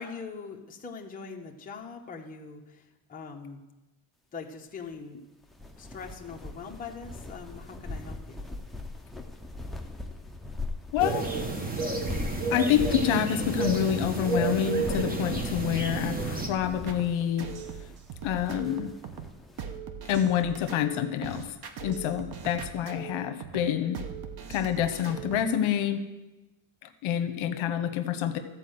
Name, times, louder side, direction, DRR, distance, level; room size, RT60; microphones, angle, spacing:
voice 1, 0.0-3.6 4.3-5.2 5.8-8.4, left 5 dB, 15° left, 0 dB, 0.8 m, -42 dB
sound 1, 5.4-19.6, left 2 dB, ahead, 0.3 m, -41 dB
voice 2, 10.9-11.3 12.5-17.5 18.2-18.9 20.1-21.5 21.8-24.0 24.5-26.0 26.8-28.4, left 10 dB, 70° left, 9 dB, 0.9 m, -27 dB
sound 2, 11.0-16.5, right 4 dB, 20° right, 0.9 m, -30 dB
sound 3, 16.9-25.5, right 7 dB, 50° right, 0.9 m, -40 dB
13.5 x 4.6 x 7.7 m, 1.1 s
cardioid pair, 160°, 50 cm